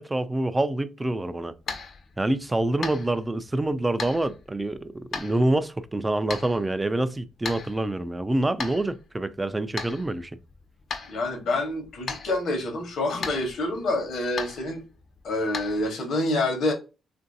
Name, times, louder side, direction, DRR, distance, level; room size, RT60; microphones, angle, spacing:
voice 1, 0.0-1.5 2.2-10.3, right 1 dB, 15° right, 0.3 m, -26 dB
sound 1, 1.3-15.9, left 4 dB, 50° left, 0.6 m, -39 dB
voice 2, 11.1-14.8 15.2-16.7, left 2 dB, 70° left, 1.0 m, -27 dB
3.0 x 2.5 x 2.6 m
cardioid pair, 90°, 0 cm